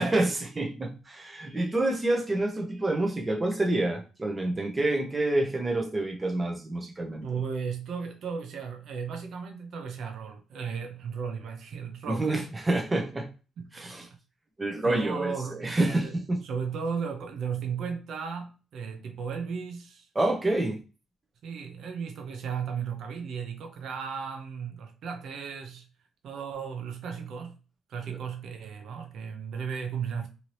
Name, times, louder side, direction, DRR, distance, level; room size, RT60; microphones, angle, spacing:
voice 1, 0.0-7.2 12.1-13.3 13.7-14.1 14.6-16.4 20.1-20.8 28.1-28.2, right 2 dB, 20° right, 0.6 m, -28 dB
voice 2, 7.2-12.3 13.6-14.2 14.8-15.6 16.0-16.2 16.4-20.1 21.4-25.9 26.2-27.6 27.9-30.3, right 6 dB, 70° right, 0.5 m, -35 dB
2.7 x 2.7 x 3.1 m
cardioid pair, 90°, 0 cm